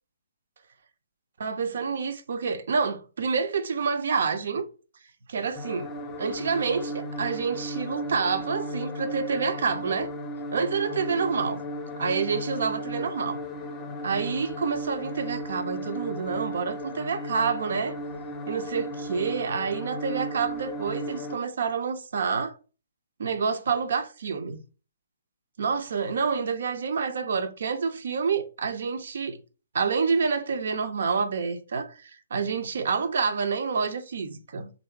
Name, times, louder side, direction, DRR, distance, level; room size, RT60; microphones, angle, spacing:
voice 1, 1.4-4.7 5.3-5.9 6.2-10.1 10.5-11.6 12.0-13.4 14.0-18.0 18.5-22.6 23.2-24.6 25.6-29.4 29.7-34.7, right 5 dB, 60° right, 0.6 m, -28 dB
sound 1, 5.6-21.4, equal, 15° left, 0.6 m, -35 dB
3.4 x 2.7 x 4.4 m
figure-of-eight pair, 130°, 0 cm